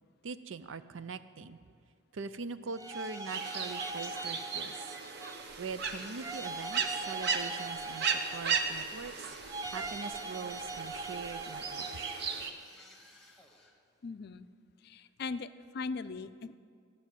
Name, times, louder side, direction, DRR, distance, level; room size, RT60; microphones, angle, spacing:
voice 1, 0.2-1.6 2.1-4.7 5.6-9.3 9.7-12.0, right 5 dB, 75° right, 13 dB, 0.5 m, -42 dB
sound 1, 2.7-5.6 6.2-9.0 9.5-12.4, right 3 dB, 20° right, 0.5 m, -41 dB
sound 2, 2.8-3.9 5.7-7.1 8.7-10.8 11.8-13.8, left 2 dB, ahead, 1.3 m, -56 dB
sound 3, 3.3-12.5, right 5 dB, 55° right, 0.9 m, -37 dB
voice 2, 14.0-14.5 14.8-16.5, left 4 dB, 50° left, 13 dB, 0.4 m, -39 dB
14.5 x 6.3 x 8.9 m, 2.1 s
head